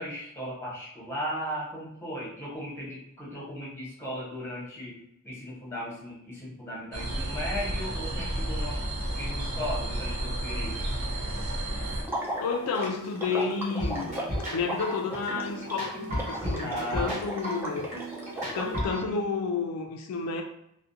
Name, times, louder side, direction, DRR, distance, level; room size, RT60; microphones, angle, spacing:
voice 1, 0.0-8.8 9.1-10.9 16.6-17.2, equal, 10° left, 0.9 m, -36 dB
sound 1, 6.9-12.0, right 1 dB, 80° right, 0.5 m, -31 dB
Water / Liquid, 12.0-18.8, right 1 dB, 10° right, 0.3 m, -36 dB
voice 2, 12.4-14.1 14.5-17.9 18.4-20.4, left 5 dB, 75° left, 0.3 m, -31 dB
sound 2, 13.8-19.1, equal, 35° right, 1.0 m, -34 dB
2.4 x 2.1 x 2.6 m
head